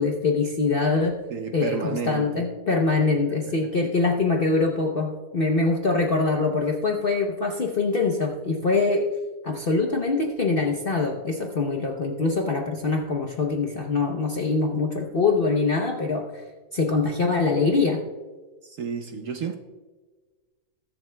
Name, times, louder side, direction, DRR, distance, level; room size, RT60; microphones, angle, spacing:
voice 1, 0.0-1.2 1.5-9.1 9.4-16.4 16.7-18.0, left 3 dB, 55° left, 0.6 m, -24 dB
voice 2, 1.3-2.5 3.1-3.7 18.6-19.6, right 6 dB, 65° right, 0.8 m, -32 dB
21.0 x 7.1 x 2.2 m
omnidirectional pair, 2.0 m